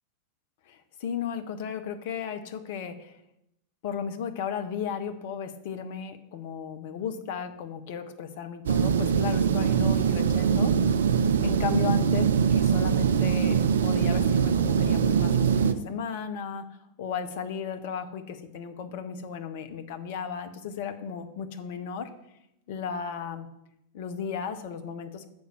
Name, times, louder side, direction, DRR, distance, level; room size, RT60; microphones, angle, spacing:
voice 1, 0.7-3.2 3.8-10.7 11.4-16.7 17.0-22.1 22.7-23.5 23.9-25.2, left 7 dB, 50° left, 7 dB, 0.8 m, -35 dB
sound 1, 8.7-15.7, right 7 dB, 65° right, 0.4 m, -23 dB
6.9 x 5.2 x 6.1 m, 0.83 s
figure-of-eight pair, 90°, 0 cm